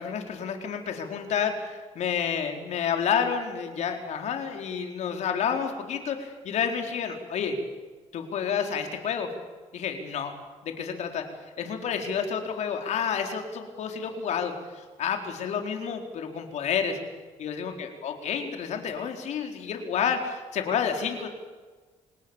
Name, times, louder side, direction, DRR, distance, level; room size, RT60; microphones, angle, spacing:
voice 1, 0.0-7.6 8.1-9.3 9.7-10.3 10.6-11.2 11.6-17.0 17.4-21.3, left 7 dB, 70° left, 4 dB, 4.3 m, -30 dB
27.5 x 19.0 x 7.2 m, 1.3 s
cardioid pair, 100°, 12 cm